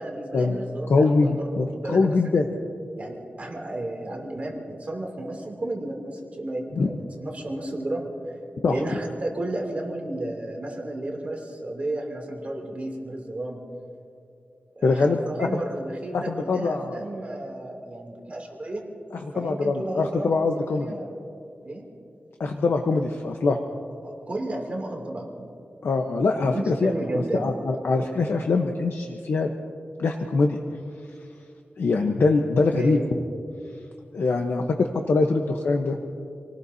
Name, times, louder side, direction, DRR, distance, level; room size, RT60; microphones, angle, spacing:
voice 1, 0.0-2.1 3.0-8.1 8.7-13.6 14.8-18.8 19.3-20.5 20.7-21.1 21.6-21.8 24.0-25.5 26.4-27.5 32.7-33.1, right 1 dB, 35° right, 0 dB, 2.7 m, -32 dB
voice 2, 0.9-2.5 6.8-6.9 8.6-8.8 14.8-15.6 16.1-17.0 19.4-20.9 22.4-23.6 25.8-26.9 27.3-29.5 30.0-30.6 31.8-33.0 34.1-36.0, left 3 dB, 80° left, 3 dB, 0.9 m, -23 dB
28.0 x 18.5 x 2.8 m, 2.5 s
wide cardioid pair, 135°, 4 cm